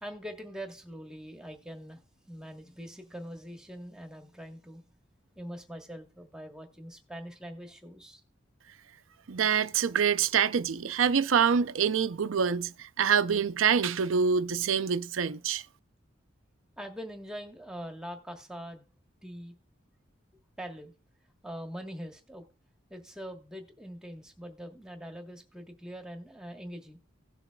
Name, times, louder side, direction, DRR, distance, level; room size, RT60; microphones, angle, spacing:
voice 1, 0.0-2.0 2.3-4.8 5.4-8.2 16.8-18.8 19.2-19.5 20.6-20.9 21.4-22.5 22.9-27.0, equal, 5° right, 1.2 m, -43 dB
voice 2, 9.3-15.6, right 7 dB, 90° right, 0.5 m, -26 dB
17.0 x 7.0 x 2.3 m
head